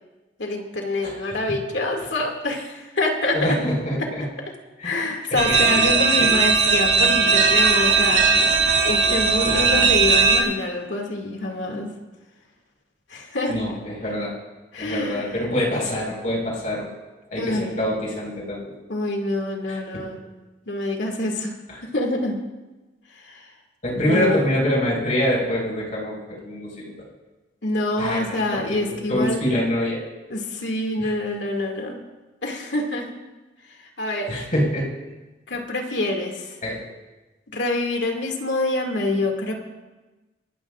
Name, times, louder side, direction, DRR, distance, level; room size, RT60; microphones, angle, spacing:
voice 1, 0.4-3.6 4.0-4.1 4.8-11.9 13.1-13.6 14.7-15.3 17.4-17.7 18.9-20.2 20.7-21.5 21.8-22.4 23.1-23.5 23.9-24.6 27.6-29.4 30.3-32.0 32.4-33.1 33.7-34.5 35.5-36.6 37.5-39.5, left 2 dB, 85° left, 2 dB, 2.4 m, -26 dB
voice 2, 3.3-4.2 4.8-5.1 5.5-6.3 9.4-10.0 13.5-14.3 14.8-16.9 17.3-18.7 19.7-20.0 21.7-21.8 23.8-26.9 28.0-30.1 31.0-31.1 34.3-34.9 36.6-36.9, equal, 45° left, -3 dB, 5.2 m, -25 dB
sound 1, 5.4-10.4, right 5 dB, 75° right, 2.3 m, -18 dB
26.0 x 13.5 x 2.5 m, 1.2 s
head